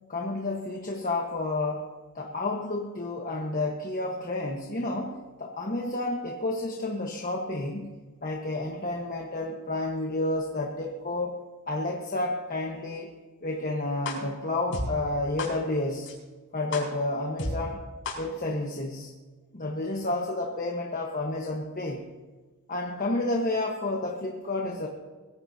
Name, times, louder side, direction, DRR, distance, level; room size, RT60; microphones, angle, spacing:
voice 1, 0.1-1.8 2.1-11.4 11.7-13.1 13.4-16.1 16.5-17.8 18.2-19.1 19.5-22.1 22.7-24.9, left 2 dB, 40° left, 0 dB, 1.3 m, -30 dB
sound 1, 14.1-14.2 14.7-14.8 15.4-15.5 16.1-16.2 16.7-16.8 17.4-17.5 18.1-18.2, left 3 dB, 60° left, 4.7 m, -31 dB
22.5 x 16.5 x 2.8 m, 1.3 s
head